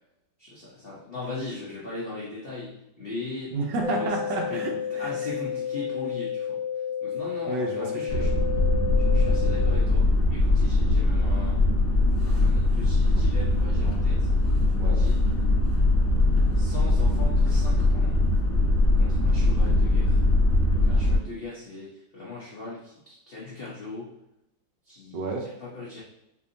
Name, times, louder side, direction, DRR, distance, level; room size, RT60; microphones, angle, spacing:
voice 1, 0.4-3.5 3.9-4.1 4.5-4.6 5.0-6.6 7.0-8.4 8.9-11.6 12.2-14.3 14.8-15.2 16.5-18.2 18.9-20.2 20.7-24.1 24.9-26.0, left 3 dB, 60° left, -7 dB, 0.6 m, -39 dB
voice 2, 3.5-5.1 7.5-8.3 14.8-15.0 25.1-25.5, right 3 dB, 70° right, 1 dB, 1.3 m, -31 dB
sound 1, 3.8-9.8, left 8 dB, 75° left, 1.3 m, -31 dB
sound 2, 8.1-21.2, left 2 dB, 40° left, 0.9 m, -21 dB
4.4 x 2.7 x 2.5 m, 0.86 s
omnidirectional pair, 2.1 m